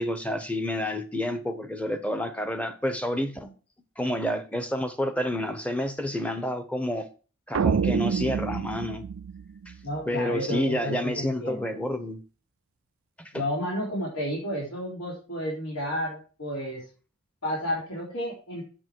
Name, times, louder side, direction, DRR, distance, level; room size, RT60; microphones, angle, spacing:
voice 1, 0.0-3.5 4.0-7.1 7.5-9.1 9.7-9.8 10.1-12.2 13.2-13.4, left 1 dB, 5° left, 0.8 m, -29 dB
sound 1, 7.5-10.0, right 6 dB, 70° right, 0.4 m, -27 dB
voice 2, 9.8-11.7 13.3-16.8 17.4-18.6, equal, 80° left, 3.8 m, -31 dB
8.8 x 7.1 x 4.6 m
head